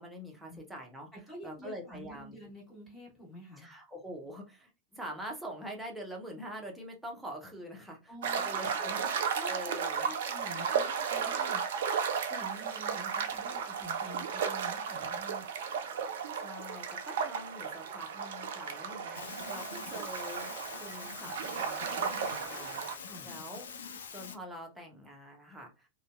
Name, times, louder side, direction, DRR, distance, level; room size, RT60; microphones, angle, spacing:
voice 1, 0.0-1.1 1.4-2.4 3.6-10.1 16.4-20.5 20.8-23.7 24.1-25.9, right 1 dB, 5° right, 0 dB, 0.7 m, -45 dB
voice 2, 1.1-3.7 8.1-15.5 23.0-23.4, equal, 15° left, -3 dB, 1.3 m, -49 dB
sound 1, 8.2-23.0, right 6 dB, 60° right, 0.4 m, -34 dB
sound 2, 19.1-24.4, left 6 dB, 65° left, 0.3 m, -44 dB
2.6 x 2.1 x 2.3 m, 0.28 s
figure-of-eight pair, 90°, 0 cm